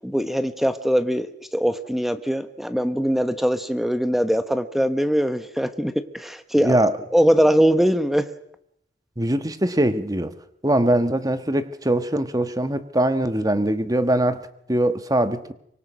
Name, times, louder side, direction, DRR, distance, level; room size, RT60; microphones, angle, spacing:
voice 1, 0.0-6.8 7.1-8.3, equal, ahead, 10 dB, 1.1 m, -21 dB
voice 2, 6.6-6.9 9.2-10.3 10.6-15.5, right 1 dB, 20° right, 10 dB, 1.3 m, -22 dB
25.0 x 23.5 x 6.2 m, 0.74 s
head